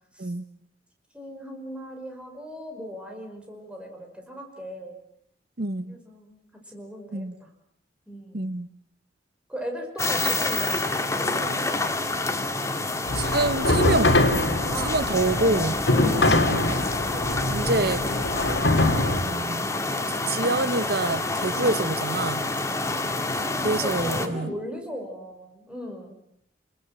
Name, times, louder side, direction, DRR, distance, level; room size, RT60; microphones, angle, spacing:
voice 1, 1.1-5.0 5.9-6.4 6.7-7.5 8.1-8.4 9.5-10.8 11.2-11.8 14.7-15.0 15.9-16.4 17.1-19.1 21.5-21.8 23.1-26.1, equal, 5° right, 5.5 m, -38 dB
voice 2, 5.6-6.0 7.1-7.3 8.3-8.7 13.1-14.2 14.8-15.8 16.3-16.6 17.5-18.0 19.2-22.4 23.6-24.5, right 2 dB, 55° right, 1.1 m, -27 dB
sound 1, 10.0-24.3, left 2 dB, 15° left, 1.9 m, -28 dB
sound 2, 13.1-19.2, left 2 dB, 70° left, 3.4 m, -23 dB
30.0 x 21.5 x 7.8 m
head